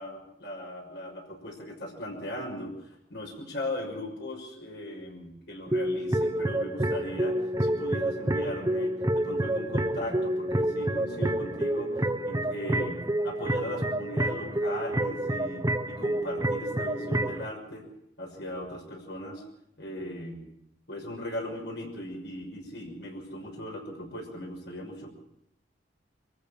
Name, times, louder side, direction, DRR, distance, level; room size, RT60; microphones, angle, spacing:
voice 1, 0.0-2.7 3.1-12.0 12.2-17.8 18.2-19.4 19.8-20.4 20.9-25.1, left 1 dB, 70° left, 0 dB, 6.2 m, -38 dB
sound 1, 5.7-17.5, right 1 dB, 20° right, 1.0 m, -28 dB
25.0 x 14.5 x 8.6 m, 0.77 s
head